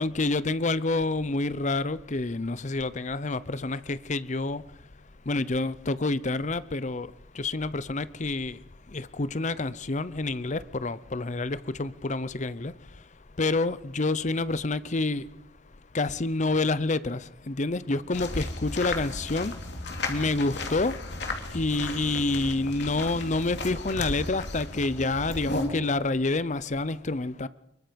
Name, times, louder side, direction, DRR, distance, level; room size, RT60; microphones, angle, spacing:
voice 1, 0.0-4.6 5.3-7.1 7.4-8.6 8.9-12.7 13.4-15.2 15.9-17.2 17.5-19.5 20.1-20.9 21.5-27.5, left 2 dB, 40° left, 0.7 m, -28 dB
sound 1, 18.1-25.7, left 2 dB, 60° left, 2.9 m, -34 dB
24.5 x 22.5 x 5.3 m
head